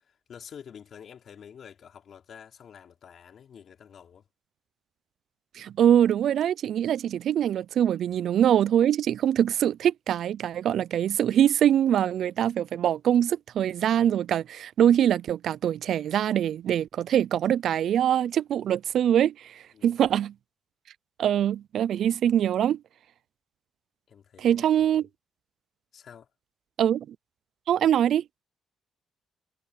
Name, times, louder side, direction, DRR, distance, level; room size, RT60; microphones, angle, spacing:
voice 1, 0.0-4.2 19.7-20.0 24.1-24.9 25.9-26.3, left 8 dB, 60° left, 3.8 m, -48 dB
voice 2, 5.6-20.3 21.2-22.8 24.4-25.0 26.8-27.2 27.7-28.2, right 10 dB, 70° right, 0.3 m, -23 dB
cardioid pair, 90°, 0 cm